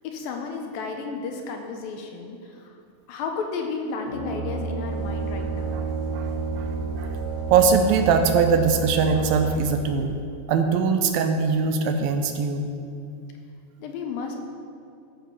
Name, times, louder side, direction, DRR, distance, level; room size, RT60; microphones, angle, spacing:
voice 1, 0.0-2.8 3.1-5.8 13.8-14.4, left 4 dB, 75° left, 3 dB, 2.5 m, -33 dB
Brass instrument, 4.0-9.8, right 4 dB, 10° right, 2.2 m, -31 dB
sound 1, 4.9-10.0, right 2 dB, 55° right, 1.1 m, -39 dB
voice 2, 6.1-7.2 7.5-10.2 10.5-12.8, right 5 dB, 80° right, 6 dB, 2.3 m, -22 dB
13.0 x 7.3 x 5.5 m, 2.5 s
omnidirectional pair, 4.4 m